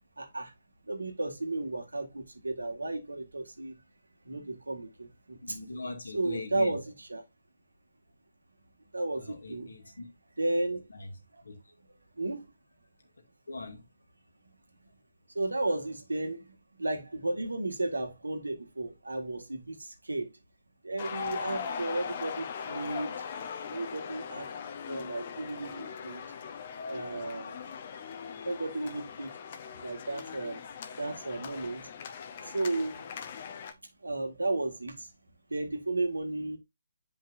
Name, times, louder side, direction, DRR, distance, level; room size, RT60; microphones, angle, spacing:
voice 1, 0.2-0.5 0.9-3.8 4.3-5.6 6.1-7.2 8.9-9.7 10.4-10.9 12.2-12.5 15.3-20.3 20.8-23.2 23.7-24.5 24.9-26.2 26.9-27.8 28.5-29.3 29.8-30.6 31.0-31.9 32.4-33.0 34.0-35.1 35.5-36.6, right 2 dB, 90° right, 1.8 m, -34 dB
voice 2, 5.4-6.7 9.2-10.1 10.9-11.1 11.4-11.6 13.5-13.8, left 3 dB, 75° left, 2.2 m, -41 dB
sound 1, 21.0-33.7, left 6 dB, 40° left, 0.9 m, -40 dB
7.9 x 5.2 x 2.6 m
figure-of-eight pair, 145°, 0 cm